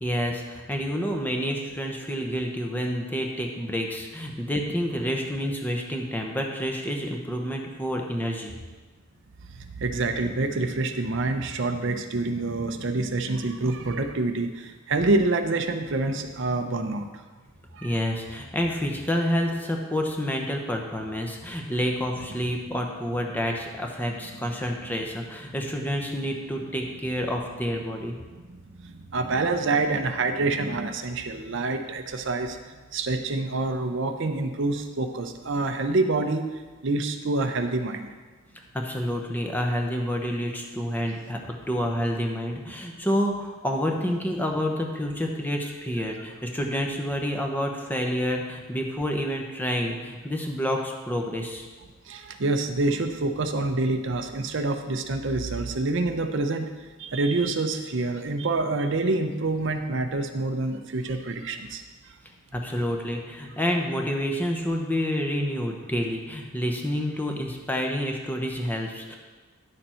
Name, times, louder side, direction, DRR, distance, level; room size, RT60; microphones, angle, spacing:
voice 1, 0.0-8.5 17.8-28.2 38.7-51.7 62.5-69.1, equal, 10° left, 1 dB, 0.8 m, -28 dB
voice 2, 9.6-17.1 17.7-18.0 28.8-32.6 32.9-36.5 36.8-38.1 41.1-41.2 52.1-56.7 57.0-61.8, right 2 dB, 60° right, 6 dB, 0.6 m, -27 dB
10.5 x 6.8 x 4.4 m, 1.3 s
head